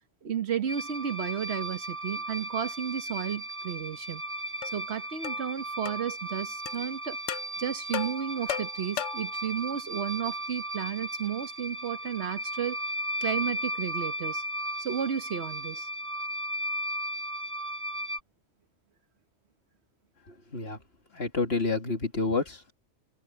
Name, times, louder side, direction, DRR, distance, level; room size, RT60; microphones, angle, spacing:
voice 1, 0.2-4.2 4.7-7.2 7.6-12.8 13.2-14.4 14.8-15.9, right 8 dB, 65° right, 1.4 m, -33 dB
sound 1, 0.7-18.2, right 1 dB, 10° right, 0.9 m, -35 dB
sound 2, 4.6-4.7 5.2-5.4 5.9-6.0 6.7-6.8 7.3-7.5 7.9-9.3, left 11 dB, 80° left, 0.9 m, -35 dB
voice 2, 20.3-20.8 21.1-22.7, left 3 dB, 60° left, 2.6 m, -29 dB
omnidirectional pair, 1.2 m